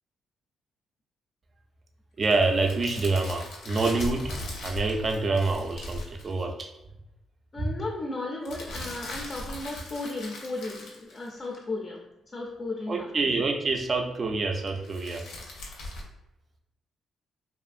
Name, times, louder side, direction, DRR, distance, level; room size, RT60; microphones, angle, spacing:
sound 1, 2.2-6.3 8.4-11.6 14.7-16.0, left 1 dB, 80° left, 0.6 m, -39 dB
voice 1, 2.2-4.3 4.6-6.7 7.6-7.7 12.9-15.3, right 3 dB, 40° right, 3 dB, 0.4 m, -27 dB
voice 2, 7.5-12.0 12.3-13.3, left 2 dB, 30° left, -1 dB, 0.4 m, -35 dB
2.6 x 2.5 x 2.4 m, 0.93 s
cardioid pair, 90°, 0 cm